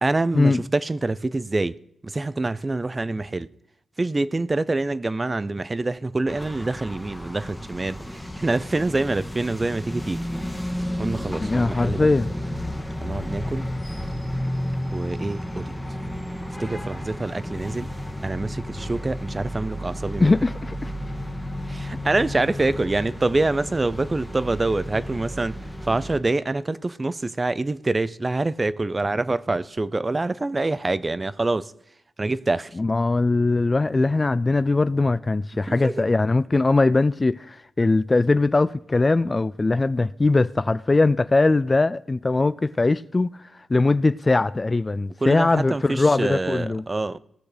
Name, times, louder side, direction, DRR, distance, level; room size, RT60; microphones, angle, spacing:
voice 1, 0.0-1.8 2.0-3.5 4.0-10.2 11.0-12.1 13.0-13.7 14.9-15.8 16.6-17.9 18.2-20.3 21.7-25.6 25.8-31.7 32.2-32.7 35.7-36.0 45.2-47.2, right 2 dB, 25° right, 0.5 m, -26 dB
sound 1, 6.3-26.2, equal, 5° left, 1.6 m, -32 dB
voice 2, 11.4-12.3 20.2-20.9 32.8-43.3 43.7-46.8, left 3 dB, 25° left, 0.4 m, -21 dB
17.5 x 6.5 x 5.0 m
cardioid pair, 85°, 0 cm